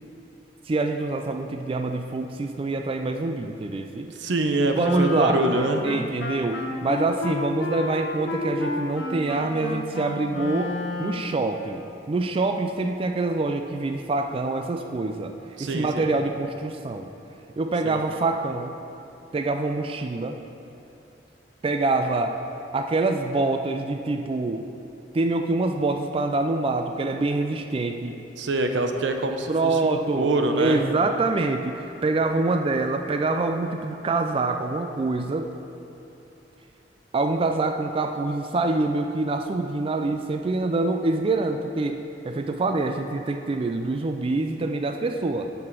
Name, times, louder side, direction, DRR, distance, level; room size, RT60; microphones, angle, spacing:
voice 1, 0.7-4.1 4.8-5.4 5.8-15.3 15.6-17.1 17.6-18.7 19.3-20.4 21.6-22.4 22.7-24.7 25.1-28.2 29.5-30.3 30.6-35.5 37.1-42.0 42.2-45.5, right 3 dB, 30° right, 5 dB, 0.3 m, -25 dB
voice 2, 4.1-5.8 15.6-16.1 17.8-18.0 28.4-30.8, right 2 dB, 80° right, 5 dB, 0.7 m, -25 dB
Wind instrument woodwind instrument, 4.8-11.4, left 2 dB, 85° left, 1.0 m, -31 dB
7.7 x 6.0 x 5.8 m, 3.0 s
head